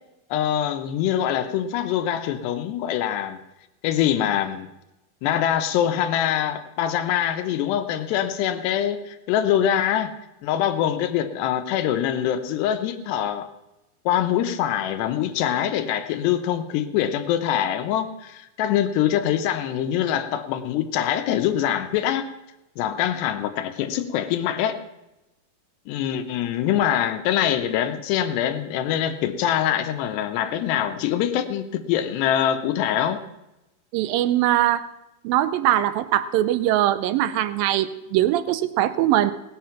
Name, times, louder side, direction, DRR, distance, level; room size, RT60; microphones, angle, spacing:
voice 1, 0.3-3.4 3.8-4.7 5.2-10.1 10.4-13.5 14.1-22.3 22.8-24.8 25.9-33.2, left 10 dB, 90° left, 8 dB, 3.1 m, -24 dB
voice 2, 33.9-34.9 35.2-39.3, right 13 dB, 80° right, 13 dB, 2.1 m, -21 dB
19.0 x 8.5 x 5.8 m, 0.95 s
omnidirectional pair, 4.7 m